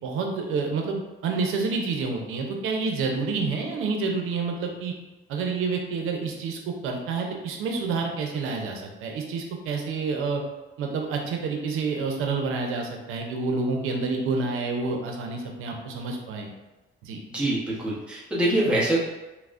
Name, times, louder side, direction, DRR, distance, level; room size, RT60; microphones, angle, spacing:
voice 1, 0.0-4.9 5.3-10.4 10.8-16.5 17.0-17.2, right 4 dB, 85° right, 2 dB, 0.6 m, -28 dB
voice 2, 17.3-19.0, right 1 dB, 5° right, -7 dB, 0.8 m, -24 dB
5.8 x 2.0 x 2.4 m, 1.1 s
cardioid pair, 155°, 21 cm